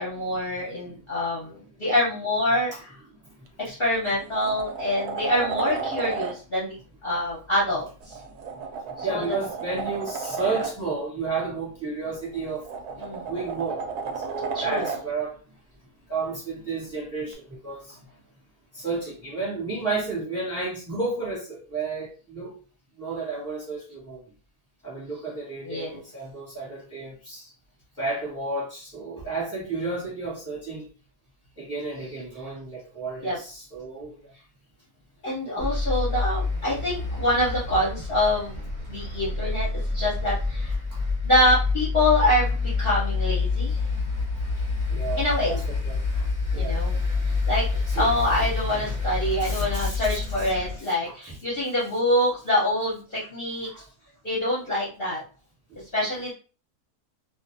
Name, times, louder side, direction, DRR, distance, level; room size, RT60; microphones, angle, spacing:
voice 1, 0.0-2.9 3.6-6.7 7.0-8.1 9.0-9.3 13.0-13.3 14.5-14.9 25.6-26.0 33.2-33.4 35.2-40.7 41.2-43.8 45.2-45.6 46.5-47.0 47.5-47.7 48.0-53.7 54.2-55.2 55.9-56.3, left 1 dB, 45° left, 0.9 m, -25 dB
sound 1, 3.5-3.6 4.1-6.3 8.0-10.7 12.2-15.0 17.3-17.4, right 5 dB, 75° right, 1.1 m, -33 dB
voice 2, 9.0-12.7 13.3-13.9 14.1-15.4 16.1-18.0 18.7-22.5 23.0-24.2 24.8-27.5 28.0-30.9 31.6-34.3 35.6-35.7 40.9-41.0 44.9-46.8 47.9-48.1 49.4-51.3 53.6-53.8, right 3 dB, 10° right, 1.1 m, -32 dB
sound 2, 35.6-50.8, left 3 dB, 35° right, 0.9 m, -27 dB
2.5 x 2.5 x 2.6 m
omnidirectional pair, 1.7 m